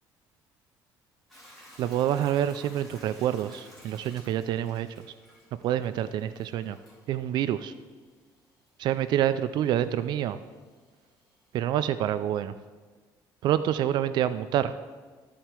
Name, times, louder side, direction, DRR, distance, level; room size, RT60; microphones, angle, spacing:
Hiss / Toilet flush / Trickle dribble, 1.3-11.6, equal, 5° left, 3.1 m, -55 dB
voice 1, 1.8-4.9 5.6-6.8 7.1-7.7 8.8-10.4 11.5-12.5 13.4-14.7, right 11 dB, 70° right, 12 dB, 0.3 m, -27 dB
13.5 x 4.6 x 4.4 m, 1.4 s
cardioid pair, 130°, 8 cm